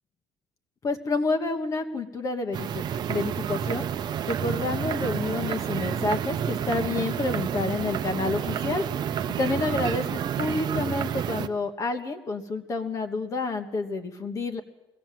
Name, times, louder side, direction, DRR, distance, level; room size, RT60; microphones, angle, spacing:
voice 1, 0.8-3.9 4.3-8.8 9.4-10.0 10.4-14.6, left 3 dB, 35° left, 6 dB, 1.3 m, -29 dB
sound 1, 2.5-11.5, right 9 dB, 50° right, 0.8 m, -29 dB
21.0 x 16.5 x 7.6 m, 1.0 s
cardioid pair, 155°, 10 cm